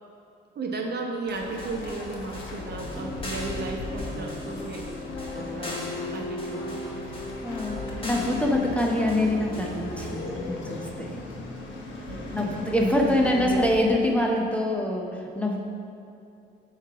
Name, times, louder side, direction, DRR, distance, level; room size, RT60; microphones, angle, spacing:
voice 1, 0.5-4.9 5.3-6.8 12.1-12.6 13.1-13.6, right 3 dB, 55° right, 1 dB, 0.9 m, -35 dB
sound 1, 1.3-13.8, left 2 dB, 75° left, 1.0 m, -39 dB
sound 2, 1.4-10.2, left 1 dB, 25° left, 1.3 m, -42 dB
sound 3, 2.6-10.3, left 2 dB, 50° left, 1.4 m, -37 dB
voice 2, 7.4-7.8 8.0-11.2 12.3-15.6, left 1 dB, 5° left, 0 dB, 0.7 m, -25 dB
7.2 x 3.2 x 5.7 m, 2.7 s
cardioid pair, 90°, 20 cm